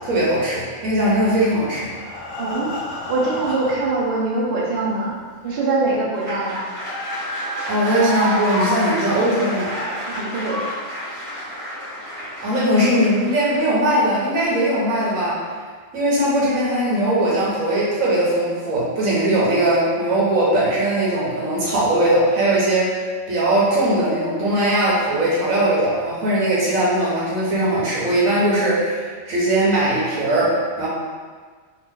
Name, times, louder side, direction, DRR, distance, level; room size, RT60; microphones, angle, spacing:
voice 1, 0.0-1.9 7.7-9.7 12.4-15.4 15.9-23.0 23.3-30.9, right 1 dB, 85° right, -6 dB, 1.3 m, -19 dB
Breathing, 1.1-4.1 4.8-4.9 5.3-5.4 5.8-5.9, left 2 dB, 55° left, 0.7 m, -34 dB
voice 2, 2.4-2.7 3.1-5.1 5.4-6.6 10.1-10.6, right 2 dB, 55° right, -4 dB, 0.7 m, -23 dB
sound 1, 5.5-13.6, equal, 25° right, 0.9 m, -29 dB
2.9 x 2.5 x 3.6 m, 1.5 s
omnidirectional pair, 1.4 m